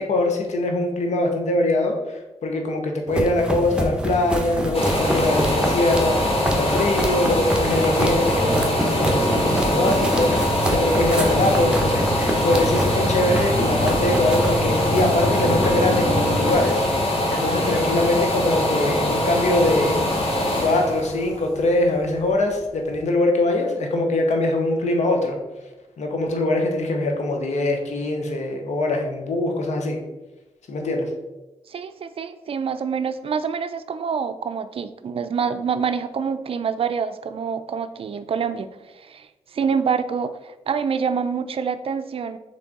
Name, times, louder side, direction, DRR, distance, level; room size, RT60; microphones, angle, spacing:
voice 1, 0.0-20.0 20.6-25.4 26.0-30.0 30.7-31.1, left 2 dB, 75° left, 3 dB, 0.8 m, -23 dB
sound 1, 3.1-16.8, right 1 dB, 5° right, 0.8 m, -26 dB
sound 2, 4.7-22.4 22.9-23.0, left 1 dB, 55° left, 1.2 m, -23 dB
voice 2, 31.7-42.4, right 6 dB, 50° right, 11 dB, 0.4 m, -26 dB
3.4 x 3.1 x 4.0 m, 1.0 s
cardioid pair, 50°, 12 cm